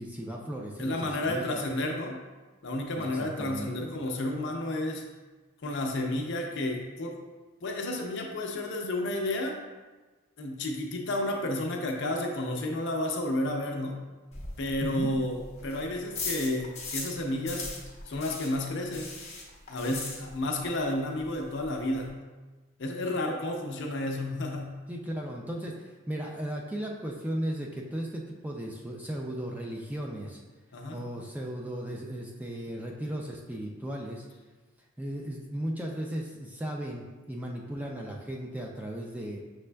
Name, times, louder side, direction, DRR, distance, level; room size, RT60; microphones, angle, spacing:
voice 1, 0.0-1.7 3.0-3.9 14.8-15.2 24.9-30.4 30.9-34.3 35.0-39.4, right 1 dB, 5° right, -1 dB, 0.3 m, -36 dB
voice 2, 0.8-2.2 2.6-5.1 5.6-7.2 7.6-9.6 10.4-14.0 14.6-17.7 18.1-19.2 19.7-22.2 22.8-24.8 30.7-31.0, left 1 dB, 55° left, 2 dB, 0.6 m, -31 dB
sound 1, 14.3-17.2 17.4-20.7 20.9-21.0 21.3-21.4 21.6-22.1, left 3 dB, 30° left, 0.8 m, -38 dB
6.2 x 3.3 x 2.2 m, 1.3 s
head